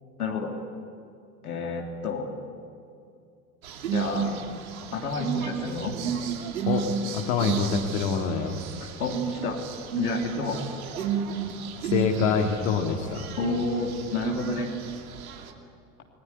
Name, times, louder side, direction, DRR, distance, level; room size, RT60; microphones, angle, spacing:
voice 1, 0.2-0.5 1.4-2.3 3.9-4.3 4.9-6.0 8.8-9.6 9.9-10.6 13.3-14.7, left 4 dB, 75° left, 1 dB, 3.4 m, -30 dB
sound 1, 3.6-15.5, right 7 dB, 65° right, 2.9 m, -32 dB
voice 2, 6.6-8.6 11.9-13.3, left 6 dB, 50° left, 2 dB, 2.4 m, -26 dB
28.5 x 21.0 x 9.9 m, 2.5 s
figure-of-eight pair, 80°, 45 cm